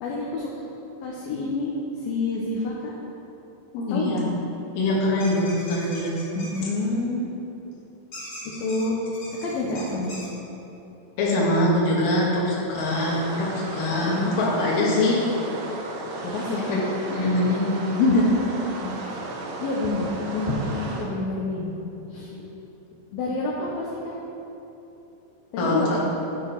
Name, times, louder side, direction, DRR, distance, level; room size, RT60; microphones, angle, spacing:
voice 1, 0.0-0.5 1.0-1.7 2.0-2.9 3.9-4.2 6.4-7.2 8.4-9.0 9.4-10.1 14.1-14.4 16.2-16.7 18.8-19.2 19.6-21.7 22.1-22.3 23.1-24.1 25.5-26.0, left 2 dB, 80° left, -4 dB, 2.2 m, -28 dB
voice 2, 3.7-4.2 4.7-6.1 11.2-15.2 16.5-16.8 17.1-18.3 22.3-22.4 25.6-26.0, left 2 dB, 60° left, -5 dB, 2.8 m, -23 dB
sound 1, 5.2-6.6 8.1-10.3, left 1 dB, 35° left, 1.9 m, -40 dB
sound 2, 12.7-21.0, right 2 dB, 85° right, 3.3 m, -34 dB
11.5 x 5.5 x 4.6 m, 3.0 s
omnidirectional pair, 5.2 m